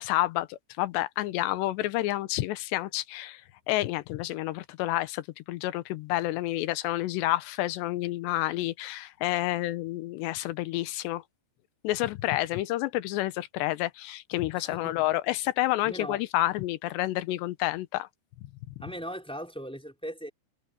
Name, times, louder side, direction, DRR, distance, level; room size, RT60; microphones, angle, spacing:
voice 1, 0.0-3.4 3.7-11.2 11.8-18.1, left 16 dB, 80° left, 3.0 m, -29 dB
voice 2, 14.5-15.1 15.8-16.2 18.8-20.3, equal, ahead, 3.5 m, -39 dB
omnidirectional pair, 5.0 m